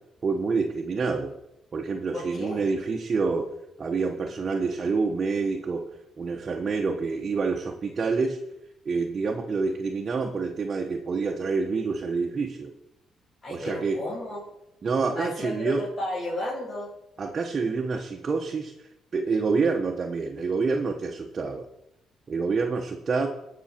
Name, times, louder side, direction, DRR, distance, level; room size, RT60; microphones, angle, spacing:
voice 1, 0.2-1.3 1.7-3.5 3.8-5.9 6.2-8.4 8.8-12.7 13.5-14.0 14.8-15.8 17.2-21.7 22.3-23.3, right 4 dB, 40° right, 2 dB, 1.1 m, -27 dB
voice 2, 2.1-2.6 13.4-14.4 15.1-15.7 16.0-16.9, left 1 dB, 35° left, -7 dB, 3.8 m, -33 dB
18.5 x 6.2 x 4.5 m, 0.85 s
cardioid pair, 90°, 0 cm